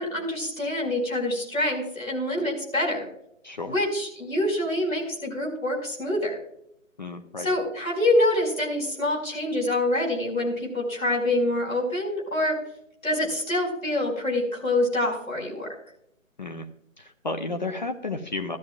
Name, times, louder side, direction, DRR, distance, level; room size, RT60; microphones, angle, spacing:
voice 1, 0.0-3.1 3.7-6.4 7.4-12.6 13.0-15.7, left 1 dB, 90° left, -1 dB, 5.3 m, -26 dB
voice 2, 3.4-3.7 7.0-7.5 16.4-16.7 17.0-18.6, left 3 dB, 35° left, 5 dB, 0.6 m, -32 dB
14.5 x 13.0 x 2.4 m, 0.73 s
figure-of-eight pair, 145°, 40 cm